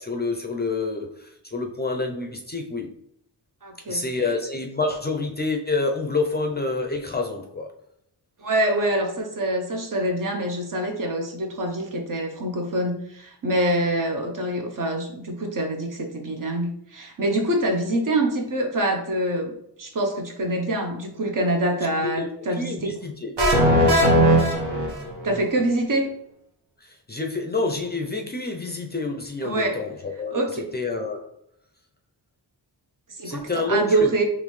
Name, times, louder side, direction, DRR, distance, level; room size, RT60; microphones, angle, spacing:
voice 1, 0.0-2.9 3.9-7.7 22.0-22.3 22.6-23.3 26.8-31.2 33.2-34.1, left 3 dB, 25° left, 3 dB, 0.5 m, -28 dB
voice 2, 3.6-4.0 8.4-19.5 19.8-22.9 25.2-26.1 29.4-29.8 30.3-30.7 33.2-34.2, right 1 dB, 50° right, 4 dB, 0.8 m, -25 dB
sound 1, 23.4-25.4, equal, 75° right, 1.2 m, -18 dB
4.0 x 3.1 x 3.1 m, 0.74 s
wide cardioid pair, 85°, 42 cm